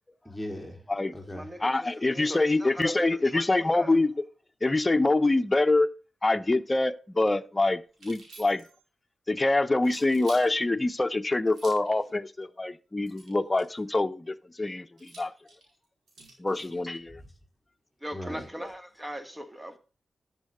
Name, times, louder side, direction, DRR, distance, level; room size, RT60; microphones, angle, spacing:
voice 1, 0.2-1.6 17.1-17.3 18.1-18.5, left 1 dB, 5° right, 3.6 m, -39 dB
voice 2, 1.6-4.1 4.6-5.9 6.2-8.6 9.3-15.3 16.4-17.2, left 2 dB, 30° left, 0.9 m, -25 dB
voice 3, 2.1-3.0 3.3-3.9 18.0-19.8, equal, 20° right, 2.0 m, -38 dB
sound 1, 7.9-8.8 9.8-10.5 11.5-11.9 13.0-13.8 15.0-16.8, right 2 dB, 75° right, 4.6 m, -50 dB
11.5 x 7.5 x 3.7 m
supercardioid pair, 40°, 0 cm